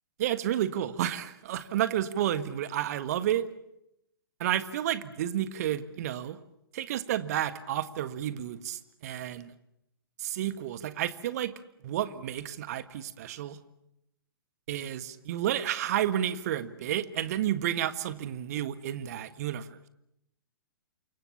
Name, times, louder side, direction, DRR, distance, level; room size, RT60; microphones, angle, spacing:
voice 1, 0.2-3.5 4.4-6.4 6.7-9.5 10.2-11.5 11.8-13.6 14.7-19.9, right 11 dB, 45° right, 13 dB, 1.7 m, -31 dB
28.5 x 24.0 x 7.3 m, 0.81 s
figure-of-eight pair, 115°, 12 cm